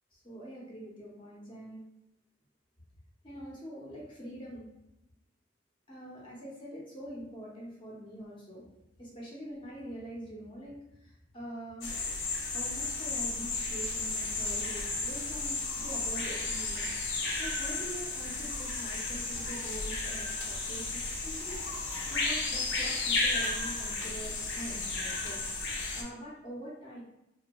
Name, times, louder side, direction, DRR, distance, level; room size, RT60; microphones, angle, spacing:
voice 1, 0.1-1.8 3.2-4.6 5.9-8.6 9.0-11.9 12.5-16.9 17.1-21.6 22.1-25.4 25.9-27.0, right 1 dB, 25° left, -5 dB, 0.6 m, -44 dB
sound 1, 11.8-26.0, left 3 dB, 75° left, 0.4 m, -33 dB
2.7 x 2.2 x 2.2 m, 0.89 s
head